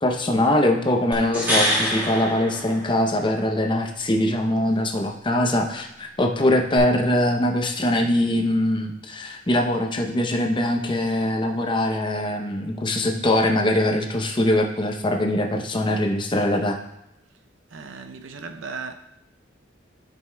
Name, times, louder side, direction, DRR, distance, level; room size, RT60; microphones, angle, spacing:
voice 1, 0.0-16.8, left 1 dB, 25° left, 0.7 m, -22 dB
sound 1, 1.1-3.4 6.8-6.9, equal, 10° right, 2.0 m, -25 dB
voice 2, 17.7-18.9, right 4 dB, 70° right, 0.6 m, -36 dB
12.5 x 5.2 x 2.2 m
head